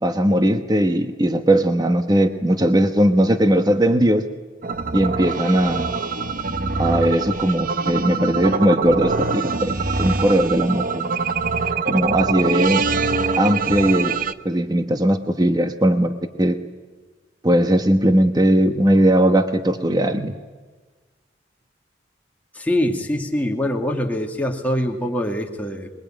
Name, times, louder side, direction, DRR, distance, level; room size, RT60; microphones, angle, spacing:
voice 1, 0.0-4.2 4.9-5.9 6.8-9.7 10.0-11.1 11.9-12.9 13.4-14.2 14.4-16.6 17.4-20.3, right 1 dB, 20° right, 7 dB, 1.1 m, -18 dB
sound 1, 4.6-14.3, right 4 dB, 45° right, 0.9 m, -24 dB
voice 2, 22.5-25.9, left 1 dB, 10° left, 1 dB, 2.4 m, -24 dB
25.5 x 22.5 x 9.1 m, 1.3 s
head